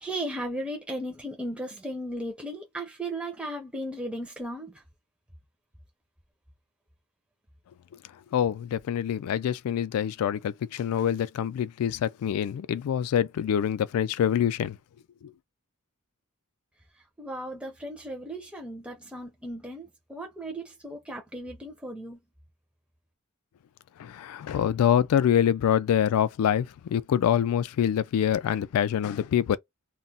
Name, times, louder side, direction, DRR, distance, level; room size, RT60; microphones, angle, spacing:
voice 1, 0.0-4.8 17.2-22.2, right 1 dB, 5° right, 0.4 m, -36 dB
voice 2, 8.3-14.8 24.0-29.6, left 9 dB, 75° left, 0.3 m, -25 dB
2.2 x 2.0 x 3.8 m
head